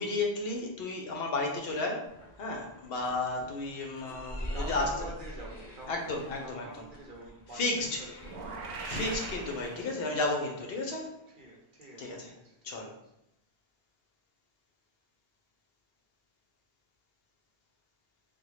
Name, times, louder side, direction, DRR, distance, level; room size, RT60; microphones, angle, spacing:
voice 1, 0.0-4.9 5.9-6.6 7.5-8.0 8.9-11.2 12.0-12.3 12.6-12.9, left 2 dB, 70° left, 1 dB, 0.8 m, -33 dB
sound 1, 2.1-9.7, equal, 40° left, 1.0 m, -43 dB
voice 2, 4.3-6.1 6.4-9.0 9.8-9.9 11.3-12.8, right 2 dB, 55° right, -3 dB, 0.7 m, -48 dB
sound 2, 8.2-10.4, right 3 dB, 80° right, 0.8 m, -41 dB
3.4 x 2.2 x 3.0 m, 0.83 s
omnidirectional pair, 1.1 m